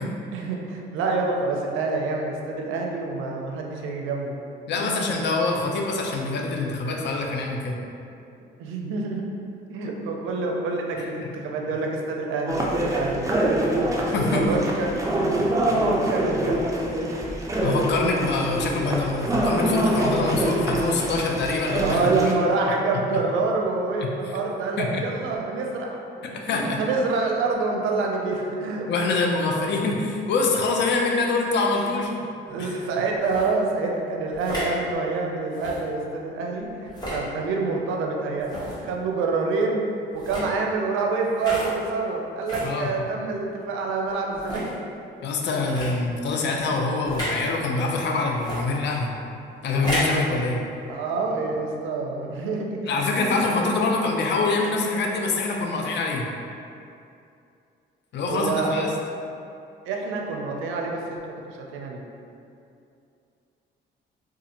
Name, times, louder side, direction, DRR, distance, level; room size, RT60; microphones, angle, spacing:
voice 1, 0.0-4.3 4.8-5.1 8.6-9.2 9.7-15.4 15.7-16.6 21.8-26.0 26.5-28.9 31.8-32.1 32.5-44.6 45.8-46.0 50.9-52.8 53.2-53.4 58.3-58.9 59.8-62.0, right 3 dB, 85° right, 0 dB, 0.4 m, -27 dB
voice 2, 4.7-7.8 11.0-11.1 14.1-14.4 17.6-22.1 24.8-25.0 26.3-26.8 28.9-32.1 32.6-32.7 42.6-42.9 45.2-49.1 49.6-50.6 52.9-56.2 58.1-58.9, left 3 dB, 65° left, 0 dB, 0.4 m, -25 dB
sound 1, 12.5-22.3, right 1 dB, 15° right, 0.4 m, -25 dB
sound 2, 33.2-33.5 34.3-34.7 35.5-35.8 36.9-37.2 38.4-38.8 40.1-40.5 41.4-41.7 42.5-42.7 43.4-43.5 44.3-44.7 45.7-45.9 47.1-47.4 48.4-48.6 49.7-50.2, equal, 20° left, 1.0 m, -31 dB
2.5 x 2.4 x 2.8 m, 2.6 s
cardioid pair, 90°, 20 cm